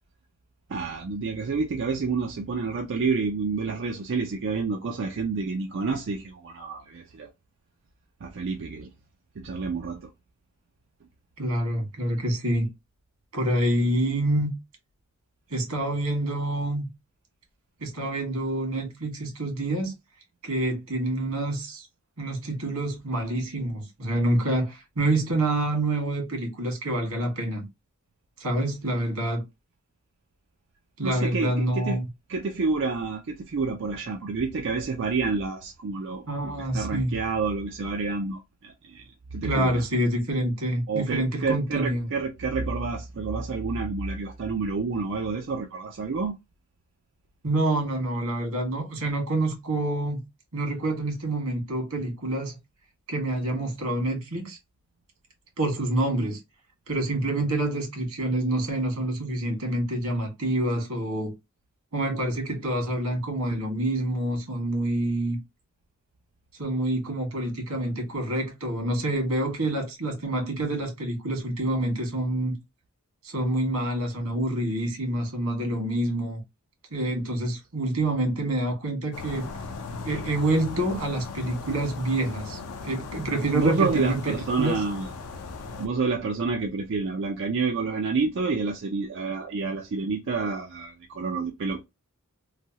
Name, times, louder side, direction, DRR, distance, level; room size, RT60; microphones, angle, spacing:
voice 1, 0.7-7.3 8.2-8.9 9.4-10.1 31.0-32.0 32.3-39.0 39.3-39.8 40.9-46.3 83.5-85.1 85.8-91.8, right 4 dB, 55° right, 0.4 m, -29 dB
voice 2, 11.4-12.7 13.3-14.5 15.5-16.9 17.8-19.9 20.4-21.9 22.2-27.6 28.4-29.4 31.0-32.0 36.3-37.1 39.4-42.1 47.4-50.2 50.5-52.6 53.1-54.6 55.6-56.4 56.9-61.3 61.9-65.4 66.6-72.6 73.2-76.4 76.9-79.5 80.0-84.8, right 1 dB, 90° right, 1.6 m, -27 dB
sound 1, 79.1-85.9, left 4 dB, 85° left, 0.5 m, -38 dB
3.2 x 2.3 x 2.7 m
head